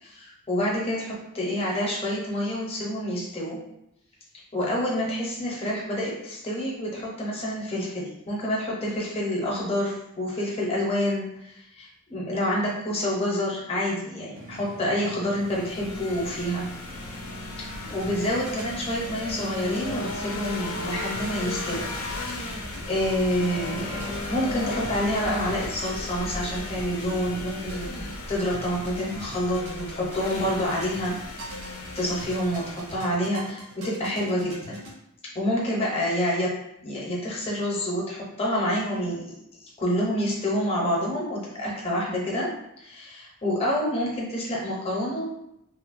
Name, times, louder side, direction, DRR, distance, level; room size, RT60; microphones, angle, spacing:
voice 1, 0.0-3.6 4.5-16.7 17.6-21.9 22.2-22.6 22.9-31.2 31.6-31.7 31.9-34.8 35.3-39.3 39.8-42.5 42.8-45.2, equal, 25° left, -4 dB, 0.6 m, -28 dB
sound 1, 14.3-24.9, right 1 dB, 60° right, 0.4 m, -44 dB
sound 2, 15.3-33.2, left 2 dB, 70° left, 0.4 m, -36 dB
sound 3, 17.8-34.9, equal, 80° right, 0.8 m, -44 dB
2.9 x 2.1 x 2.5 m, 0.81 s
head